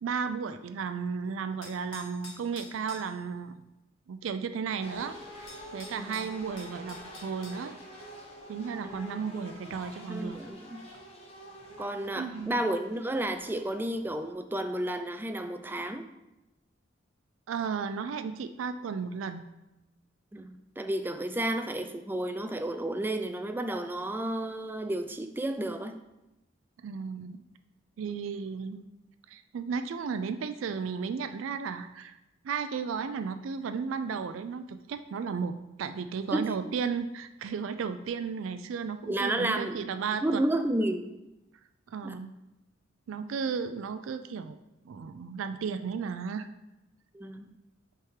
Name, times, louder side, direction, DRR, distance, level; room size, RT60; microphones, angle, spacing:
voice 1, 0.0-3.6 4.1-5.2 5.7-7.7 8.5-10.4 12.2-12.6 17.5-19.4 26.8-27.4 28.0-28.9 29.3-32.2 32.4-40.4 41.9-42.3 43.1-44.6 44.8-46.5, right 6 dB, 85° right, 10 dB, 0.4 m, -34 dB
sound 1, 1.6-3.1 5.0-5.1 5.5-7.6, left 3 dB, 85° left, 1.5 m, -48 dB
sound 2, 4.8-14.3, equal, 30° left, 1.1 m, -47 dB
voice 2, 6.0-6.3 8.8-9.1 10.1-10.8 11.8-16.1 20.3-25.9 36.3-36.5 39.1-39.9 40.2-41.1 42.0-42.3 47.1-47.5, right 1 dB, 10° right, 7 dB, 0.3 m, -32 dB
5.8 x 3.6 x 4.7 m, 0.95 s
head